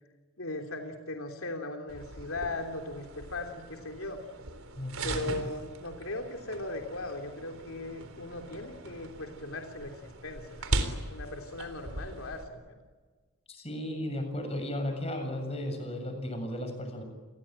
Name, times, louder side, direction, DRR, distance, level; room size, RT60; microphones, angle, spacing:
voice 1, 0.4-4.2 5.0-12.8, left 2 dB, 75° left, 3 dB, 3.3 m, -38 dB
sound 1, 1.9-12.4, right 2 dB, 75° right, 3.8 m, -39 dB
voice 2, 4.8-5.4 13.5-17.0, left 1 dB, 30° left, 6 dB, 7.1 m, -35 dB
30.0 x 22.0 x 9.0 m, 1.4 s
head